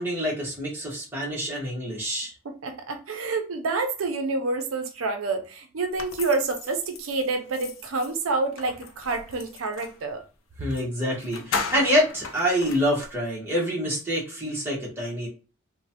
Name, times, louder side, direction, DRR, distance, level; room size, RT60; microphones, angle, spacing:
voice 1, 0.0-2.3 10.6-15.3, equal, 10° right, 1.0 m, -26 dB
voice 2, 2.4-10.2, right 3 dB, 85° right, 0.5 m, -28 dB
sound 1, 6.0-10.0 10.7-10.8 11.1-13.1, left 4 dB, 85° left, 0.5 m, -36 dB
3.1 x 2.1 x 2.7 m
head